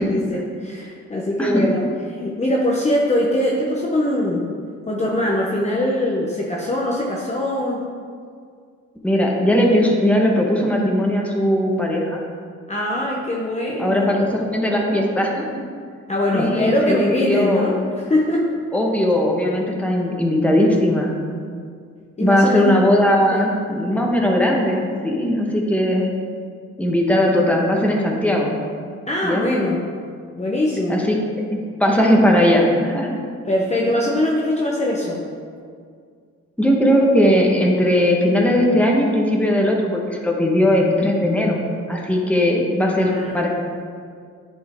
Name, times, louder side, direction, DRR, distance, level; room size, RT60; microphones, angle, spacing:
voice 1, 0.0-1.8 2.2-4.4 4.9-7.8 12.7-14.1 16.1-17.8 18.0-18.5 22.2-22.7 23.3-23.4 29.1-29.8 30.3-31.0 33.4-35.2 43.0-43.5, left 1 dB, 20° left, -3 dB, 0.9 m, -22 dB
voice 2, 1.4-1.7 9.0-12.2 13.8-15.6 16.3-17.7 18.7-21.1 22.2-26.1 26.8-28.5 29.2-29.5 30.9-31.3 31.8-33.2 36.6-41.6 41.9-43.5, left 1 dB, 5° left, -1 dB, 1.2 m, -18 dB
10.0 x 4.4 x 3.6 m, 2.1 s
cardioid pair, 90°, 30 cm